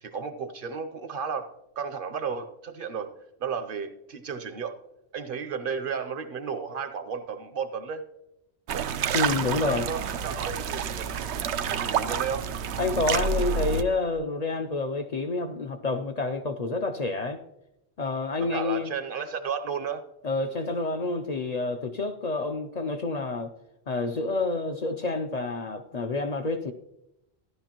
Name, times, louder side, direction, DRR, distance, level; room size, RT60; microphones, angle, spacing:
voice 1, 0.0-3.1 3.4-4.8 5.1-8.0 9.7-12.5 18.5-20.0, right 6 dB, 60° right, 9 dB, 0.8 m, -33 dB
sound 1, 8.7-13.8, right 6 dB, 90° right, 0.9 m, -29 dB
voice 2, 9.1-9.9 12.8-17.4 18.0-18.9 20.2-23.5 23.9-26.7, left 3 dB, 50° left, 5 dB, 0.6 m, -28 dB
14.0 x 11.0 x 2.9 m, 0.88 s
omnidirectional pair, 1.1 m